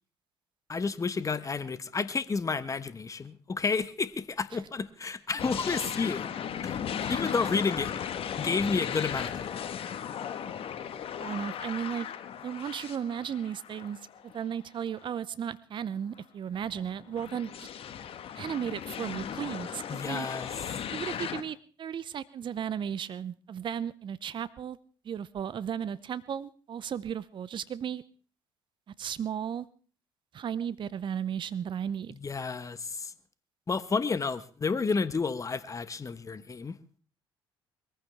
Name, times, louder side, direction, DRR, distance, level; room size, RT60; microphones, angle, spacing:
voice 1, 0.7-6.3 6.6-6.8 7.1-7.9 8.4-9.5 19.9-20.5 32.2-33.1 33.7-36.8, left 4 dB, 30° left, 14 dB, 1.2 m, -31 dB
sound 1, 5.4-14.4 15.0-15.1 16.5-21.4, left 8 dB, 55° left, 1.4 m, -36 dB
voice 2, 7.0-7.5 11.2-12.1 12.4-17.7 18.3-20.3 20.9-24.8 25.0-28.0 29.0-29.7 30.3-32.1, right 8 dB, 45° right, 17 dB, 0.7 m, -35 dB
22.0 x 15.0 x 3.5 m, 0.40 s
hypercardioid pair, 55°, 12 cm